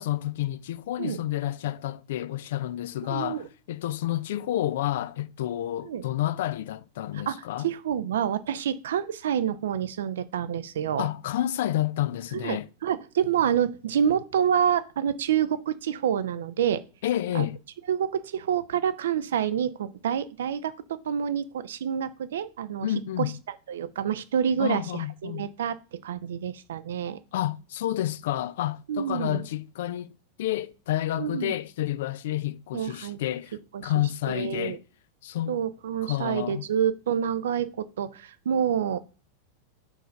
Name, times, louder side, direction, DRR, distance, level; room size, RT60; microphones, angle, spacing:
voice 1, 0.0-7.7 11.0-12.7 17.0-17.6 22.8-23.4 24.6-25.5 27.3-30.1 30.4-33.6 33.8-34.8 35.2-35.6 36.0-36.7, left 13 dB, 55° left, 0.4 m, -29 dB
voice 2, 3.0-3.5 5.8-6.0 7.1-7.4 7.6-11.1 12.3-16.8 17.3-17.5 17.9-22.9 23.2-27.2 28.9-29.4 31.1-31.5 32.7-33.2 33.7-33.9 34.3-34.8 35.5-39.0, right 8 dB, 60° right, 0.5 m, -28 dB
5.0 x 4.6 x 5.4 m
figure-of-eight pair, 90°, 0 cm